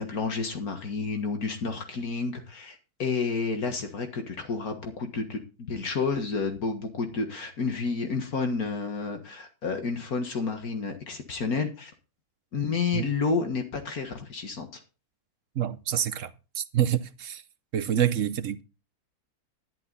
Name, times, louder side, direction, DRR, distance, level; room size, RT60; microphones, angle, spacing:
voice 1, 0.0-5.4 5.7-11.9 12.5-14.8, left 4 dB, 75° left, 2.1 m, -30 dB
voice 2, 15.6-17.4 17.7-18.6, right 10 dB, 60° right, 1.0 m, -27 dB
11.5 x 11.0 x 4.0 m
omnidirectional pair, 1.6 m